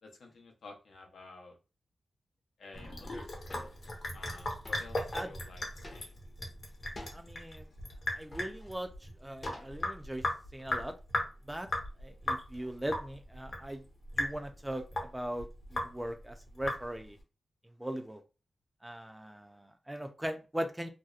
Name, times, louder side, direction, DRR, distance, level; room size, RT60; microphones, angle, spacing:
voice 1, 0.0-1.6 2.6-6.2, left 3 dB, 85° left, 1 dB, 0.6 m, -52 dB
Sink (filling or washing) / Drip, 2.7-17.2, left 1 dB, 60° left, 0.9 m, -38 dB
sound 1, 3.5-3.8 4.6-4.9 5.8-6.3 6.9-7.3 8.1-8.7 9.4-10.1, left 1 dB, 35° left, 0.6 m, -48 dB
voice 2, 7.1-7.7 8.1-10.3 10.5-10.9 11.5-11.7 12.0-13.8 14.2-17.2 17.8-18.2 18.8-20.9, right 1 dB, 10° right, 6 dB, 0.4 m, -39 dB
2.7 x 2.1 x 2.3 m, 0.31 s
wide cardioid pair, 100°, 0 cm